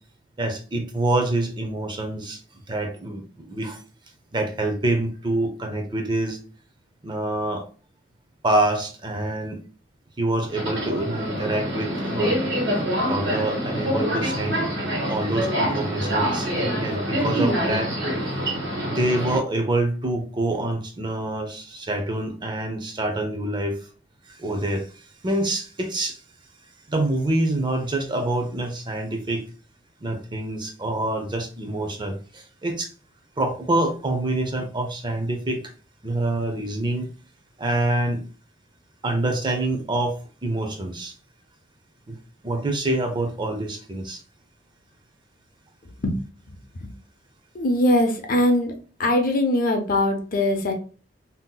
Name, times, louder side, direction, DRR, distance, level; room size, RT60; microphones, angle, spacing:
voice 1, 0.4-3.8 4.3-6.4 7.0-7.6 8.4-9.6 10.2-12.4 13.0-14.6 15.1-17.9 18.9-23.9 24.3-26.2 26.9-29.4 30.0-32.9 33.4-35.7 36.0-37.1 37.6-38.2 39.0-41.1 42.1-42.2 42.4-44.2, right 2 dB, 25° right, 5 dB, 0.5 m, -26 dB
Subway metro underground, 10.5-19.4, equal, 75° right, 1.3 m, -25 dB
voice 2, 46.5-46.9 47.5-48.7 49.0-50.7, left 1 dB, 50° left, 4 dB, 0.6 m, -22 dB
2.7 x 2.0 x 3.8 m, 0.37 s
head